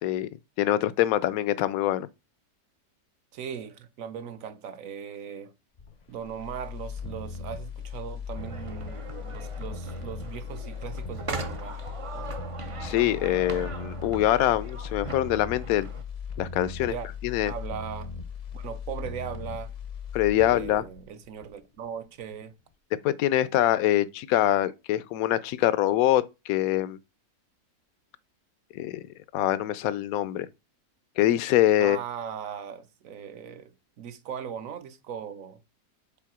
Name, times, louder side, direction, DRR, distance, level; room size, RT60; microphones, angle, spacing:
voice 1, 0.6-2.1 12.8-15.9 16.4-16.9 17.2-17.5 20.1-20.8 23.0-27.0 28.7-29.0 29.3-30.5 31.2-32.0, left 13 dB, 75° left, 1.0 m, -24 dB
voice 2, 3.3-5.5 6.1-11.8 12.1-12.3 16.8-17.1 17.4-18.1 18.5-19.7 20.3-22.5 31.8-35.6, right 8 dB, 65° right, 1.1 m, -39 dB
sound 1, 5.8-21.9 22.2-22.3, left 5 dB, 40° left, 0.6 m, -38 dB
sound 2, 8.4-16.0, right 3 dB, 50° right, 0.4 m, -40 dB
5.7 x 4.2 x 6.0 m
omnidirectional pair, 1.6 m